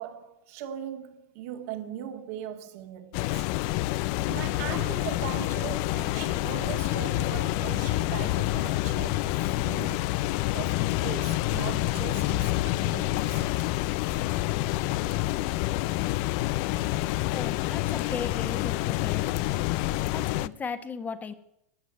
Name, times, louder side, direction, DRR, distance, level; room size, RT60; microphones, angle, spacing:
voice 1, 0.0-3.4 4.3-10.1 10.5-13.5, right 10 dB, 65° right, 2.0 m, -39 dB
sound 1, 3.1-20.5, left 17 dB, 55° left, 0.5 m, -28 dB
voice 2, 17.3-19.2 20.1-21.3, left 5 dB, 20° left, 1.3 m, -36 dB
15.5 x 6.4 x 9.7 m
supercardioid pair, 120°, 8 cm